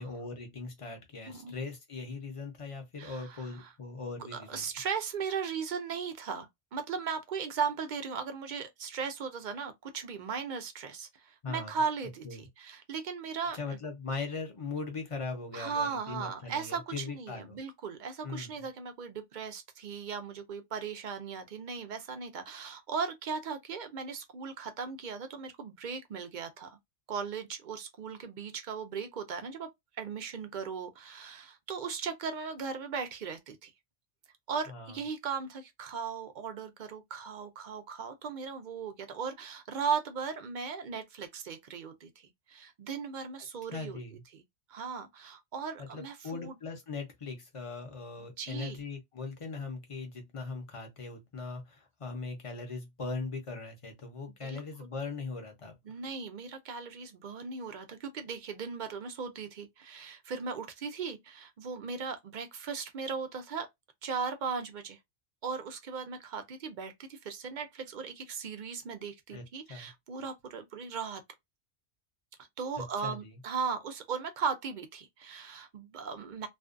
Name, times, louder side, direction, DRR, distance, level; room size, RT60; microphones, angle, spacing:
voice 1, 0.0-4.6 11.4-11.8 12.2-12.5 13.5-17.6 18.2-18.6 34.7-35.0 43.7-44.2 45.8-55.8 69.3-69.4 69.7-69.9 72.8-73.3, left 4 dB, 35° left, 0.7 m, -40 dB
voice 2, 3.0-3.7 4.3-13.6 15.5-26.8 27.1-33.7 34.5-44.0 44.3-44.4 44.7-46.6 48.4-48.8 54.4-54.6 55.9-63.7 64.0-65.0 65.4-71.2 72.6-76.5, right 6 dB, 60° right, 0.5 m, -37 dB
2.5 x 2.3 x 2.4 m
omnidirectional pair, 1.1 m